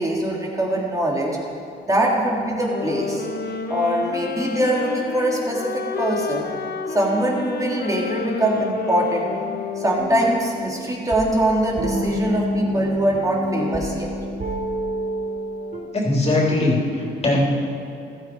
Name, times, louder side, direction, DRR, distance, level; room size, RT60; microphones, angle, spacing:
voice 1, 0.0-1.4 1.8-3.3 3.7-6.5 6.9-9.3 9.8-14.1, right 1 dB, 15° right, -3 dB, 3.3 m, -22 dB
sound 1, 2.7-10.7, left 5 dB, 55° left, 1.2 m, -30 dB
sound 2, 10.0-15.8, equal, 45° right, 4.1 m, -28 dB
voice 2, 15.9-17.4, left 2 dB, 30° left, -3 dB, 3.8 m, -20 dB
15.0 x 14.0 x 4.8 m, 2.5 s
cardioid pair, 90°, 20 cm